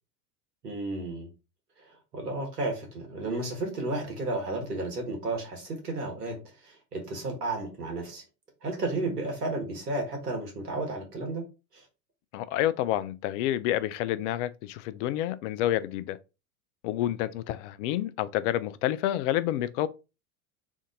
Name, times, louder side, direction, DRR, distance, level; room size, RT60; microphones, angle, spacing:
voice 1, 0.6-1.3 2.1-8.2 8.6-11.4 11.7-11.8, right 2 dB, 90° right, 1.8 m, -33 dB
voice 2, 12.3-16.2 16.8-19.9, left 13 dB, 55° left, 0.5 m, -29 dB
3.6 x 2.6 x 3.7 m
hypercardioid pair, 90°, 45 cm